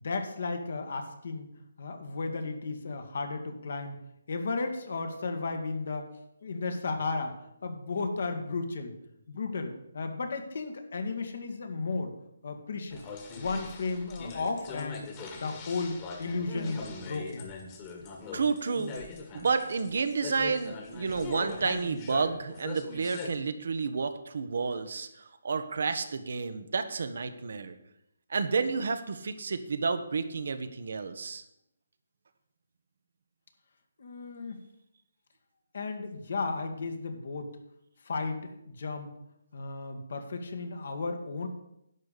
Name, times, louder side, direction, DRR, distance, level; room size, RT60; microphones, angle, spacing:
voice 1, 0.0-1.5 1.8-4.0 4.3-6.1 6.4-7.3 7.6-8.9 9.3-12.1 12.4-13.0 13.4-15.1 15.4-17.5 34.0-34.6 35.7-37.5 38.0-39.1 39.5-41.5, left 3 dB, 60° left, 6 dB, 1.8 m, -34 dB
sound 1, 12.9-23.3, left 4 dB, 25° left, 1.7 m, -42 dB
voice 2, 18.3-18.9 19.3-27.7 28.3-31.4, right 4 dB, 65° right, 10 dB, 1.1 m, -30 dB
11.0 x 4.9 x 8.3 m, 0.79 s
figure-of-eight pair, 150°, 0 cm